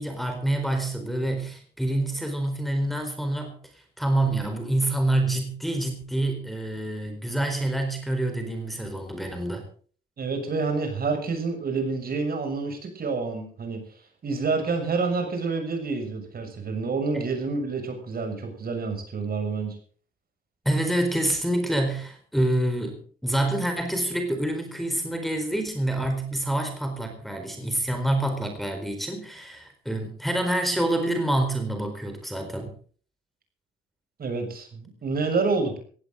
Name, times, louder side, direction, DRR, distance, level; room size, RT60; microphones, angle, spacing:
voice 1, 0.0-9.7 17.1-17.2 20.6-32.7, right 1 dB, ahead, 4 dB, 4.3 m, -27 dB
voice 2, 10.2-13.8 14.2-19.8 34.2-35.8, right 4 dB, 50° right, 5 dB, 6.9 m, -28 dB
18.0 x 17.0 x 3.9 m, 0.44 s
cardioid pair, 90°, 20 cm